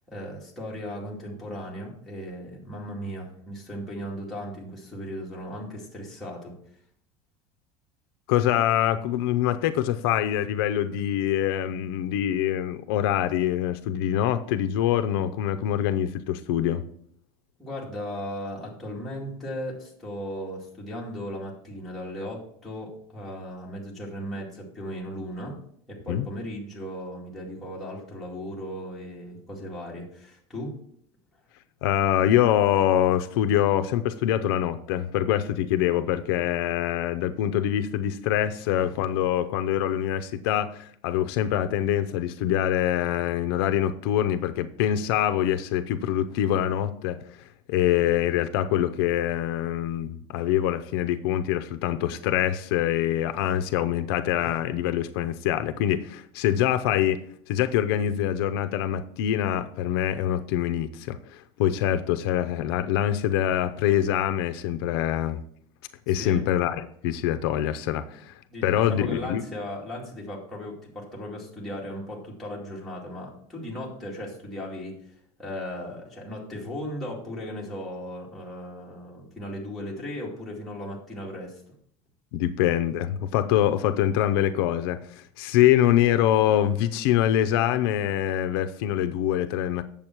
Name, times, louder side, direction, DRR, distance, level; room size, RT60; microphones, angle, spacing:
voice 1, 0.1-6.5 17.6-25.6 25.9-30.8 66.1-66.4 68.5-75.0 75.4-81.6, equal, ahead, -5 dB, 2.4 m, -36 dB
voice 2, 8.3-16.8 26.1-26.3 31.8-47.2 47.7-57.2 57.5-65.4 66.1-69.4 82.3-89.8, left 11 dB, 80° left, 9 dB, 0.6 m, -24 dB
8.9 x 7.2 x 4.5 m, 0.65 s
cardioid pair, 170°, 12 cm